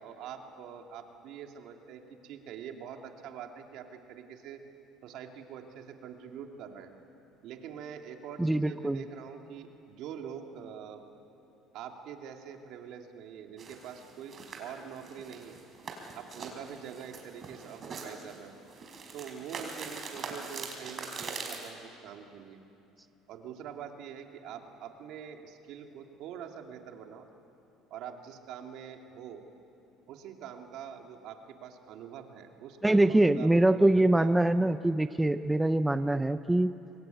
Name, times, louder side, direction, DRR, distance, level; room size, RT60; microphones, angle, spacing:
voice 1, 0.0-4.6 5.0-6.9 7.4-11.0 11.7-15.6 16.1-18.5 19.1-22.6 23.3-27.3 27.9-29.4 30.1-34.3 35.2-35.3, right 8 dB, 65° right, 4 dB, 2.5 m, -45 dB
voice 2, 8.4-9.0 32.8-36.7, right 1 dB, 10° right, 11 dB, 0.6 m, -24 dB
sound 1, 13.6-21.7, right 4 dB, 35° right, 4.6 m, -43 dB
26.0 x 21.5 x 9.3 m, 2.8 s
cardioid pair, 110°, 0 cm